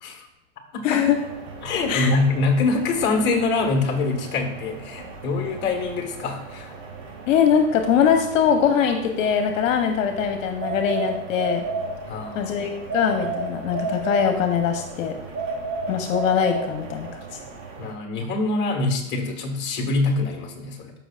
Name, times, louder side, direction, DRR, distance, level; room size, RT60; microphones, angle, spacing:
voice 1, 0.8-1.2 1.9-2.1 7.3-11.6 12.3-15.2 15.9-17.1, left 7 dB, 70° left, 5 dB, 1.0 m, -22 dB
sound 1, 1.0-17.9, right 4 dB, 55° right, 2.9 m, -40 dB
voice 2, 1.6-6.7 12.1-12.5 17.8-20.9, left 3 dB, 25° left, 3 dB, 1.6 m, -24 dB
sound 2, 10.6-12.4 12.9-14.8 15.3-17.2, right 3 dB, 25° right, 0.8 m, -30 dB
13.0 x 5.6 x 2.5 m, 0.96 s
supercardioid pair, 140°, 41 cm